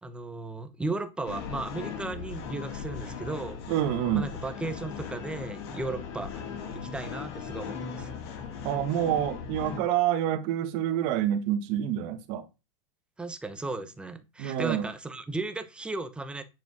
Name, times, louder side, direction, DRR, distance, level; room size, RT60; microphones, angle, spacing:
voice 1, 0.0-3.6 4.1-6.3 6.7-8.1 13.2-16.4, right 3 dB, 5° right, 0.9 m, -35 dB
sound 1, 1.2-9.8, left 6 dB, 55° left, 2.9 m, -38 dB
voice 2, 3.7-4.3 8.6-12.4 14.4-14.9, right 11 dB, 40° right, 1.6 m, -27 dB
9.4 x 5.1 x 6.1 m
supercardioid pair, 165°, 16 cm